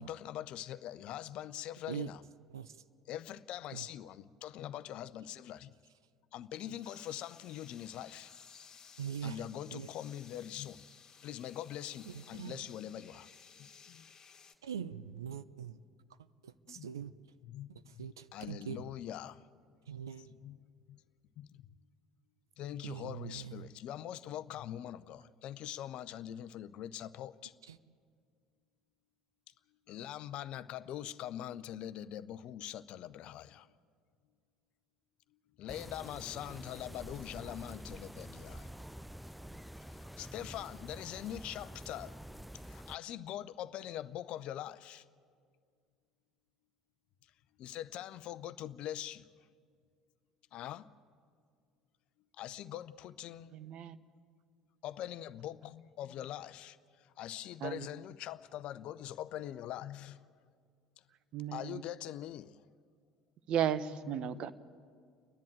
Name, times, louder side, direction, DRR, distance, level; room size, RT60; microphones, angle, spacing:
voice 1, 0.0-2.2 3.1-5.7 6.3-8.3 9.2-10.8 11.2-13.3 13.6-14.1 16.7-16.9 17.5-18.0 18.3-19.4 20.4-20.6 20.9-21.0 21.4-21.7 22.6-27.5 29.9-33.7 35.6-38.7 39.9-42.2 42.6-45.0 47.6-49.3 50.5-50.9 52.4-53.5 54.8-56.8 57.2-60.2 61.5-62.6 64.0-64.4, left 12 dB, 55° left, 0.6 m, -43 dB
sound 1, 6.8-14.5, left 6 dB, 35° left, 2.0 m, -57 dB
voice 2, 9.0-9.4 9.7-9.9 12.1-12.6 14.6-15.8 16.4-17.1 17.7-18.9 19.9-20.3 22.8-23.7 27.6-27.8, right 8 dB, 85° right, 0.5 m, -43 dB
sound 2, 35.7-43.0, equal, ahead, 0.5 m, -48 dB
voice 3, 53.5-54.0 57.6-57.9 61.3-61.8 63.5-64.5, right 9 dB, 55° right, 0.9 m, -34 dB
30.0 x 10.5 x 9.0 m
figure-of-eight pair, 60°, 2 cm